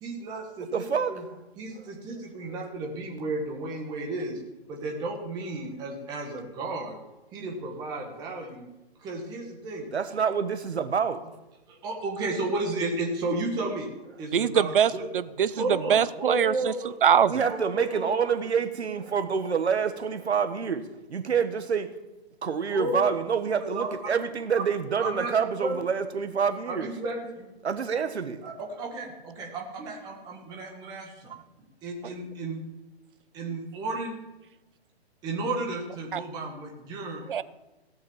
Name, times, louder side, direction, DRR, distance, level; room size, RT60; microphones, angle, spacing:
voice 1, 0.0-1.2 1.6-4.4 4.7-7.0 7.3-8.7 9.0-9.9 11.7-13.9 14.2-15.1 15.6-17.0 17.5-18.1 22.7-23.1 23.6-24.1 25.0-25.3 25.6-25.8 26.7-27.5 28.4-31.4 31.8-32.6 33.3-34.2 35.2-37.2, right 2 dB, 10° right, 1.7 m, -33 dB
voice 2, 0.6-1.3 9.9-11.2 17.3-20.8 21.1-21.9 22.4-26.9 27.6-28.4 37.2-37.4, right 6 dB, 90° right, 1.6 m, -27 dB
voice 3, 14.3-16.7 17.0-17.4 36.1-36.2 37.3-37.4, right 8 dB, 55° right, 0.7 m, -23 dB
17.0 x 6.4 x 7.3 m
hypercardioid pair, 165°, 32 cm